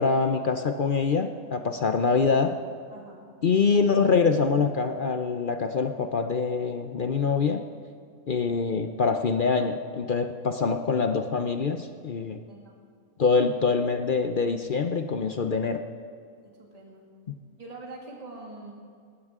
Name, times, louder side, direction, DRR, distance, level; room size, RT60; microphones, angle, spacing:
voice 1, 0.0-2.6 3.4-7.7 8.3-12.4 13.2-15.8, left 5 dB, 50° left, 7 dB, 0.6 m, -25 dB
voice 2, 2.9-3.3 12.5-12.8 16.4-17.1 17.6-18.7, right 3 dB, 25° right, -2 dB, 2.2 m, -44 dB
20.0 x 18.5 x 3.7 m, 2.2 s
omnidirectional pair, 1.5 m